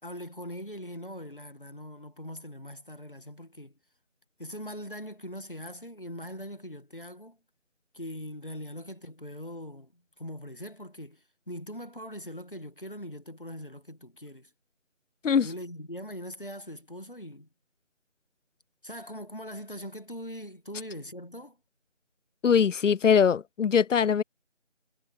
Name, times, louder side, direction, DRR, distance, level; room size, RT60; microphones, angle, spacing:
voice 1, 0.0-3.8 4.4-7.4 7.9-14.5 15.4-17.5 18.8-21.6, equal, 45° left, 1.9 m, -41 dB
voice 2, 22.4-24.2, left 7 dB, 85° left, 0.5 m, -22 dB
figure-of-eight pair, 175°, 36 cm